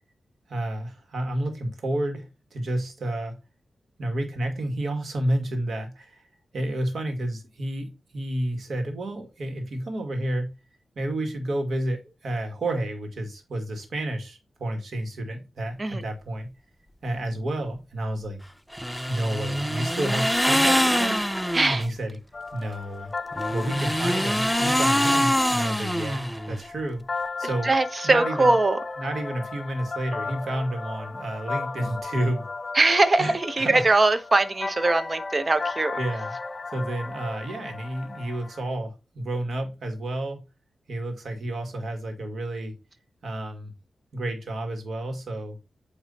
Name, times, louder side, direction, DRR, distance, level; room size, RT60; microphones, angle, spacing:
voice 1, 0.5-3.4 4.0-6.3 6.5-10.5 11.0-16.5 17.0-18.4 19.1-21.2 21.7-22.2 22.5-23.1 23.5-27.0 27.4-27.7 28.0-28.5 29.0-32.4 33.2-33.9 36.0-40.4 40.9-42.7 43.2-43.7 44.1-45.6, right 1 dB, 75° right, 2.0 m, -30 dB
sound 1, 18.7-21.9 23.3-26.7, equal, ahead, 0.6 m, -24 dB
voice 2, 21.5-21.9 27.6-28.8 32.7-35.9, right 2 dB, 35° right, 0.9 m, -21 dB
sound 2, 22.3-38.7, left 3 dB, 40° left, 0.5 m, -35 dB
8.6 x 3.2 x 4.1 m
cardioid pair, 70°, 0 cm